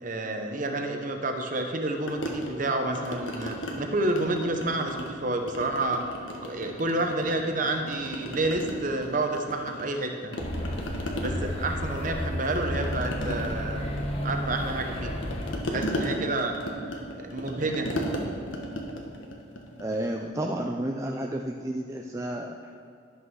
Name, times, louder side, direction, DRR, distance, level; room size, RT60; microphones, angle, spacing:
voice 1, 0.0-6.0 6.4-10.3 11.2-13.9 14.2-15.1 15.6-16.6 17.1-17.9, right 2 dB, 40° right, 4 dB, 1.0 m, -29 dB
sound 1, 2.1-3.8 4.1-5.2 5.5-7.3 7.6-10.0 10.3-20.1, equal, 70° left, 1.4 m, -36 dB
sound 2, 10.4-15.6, equal, 30° left, 1.2 m, -32 dB
voice 2, 19.8-22.7, right 1 dB, 15° right, 2 dB, 0.4 m, -31 dB
11.0 x 6.3 x 6.3 m, 2.4 s
head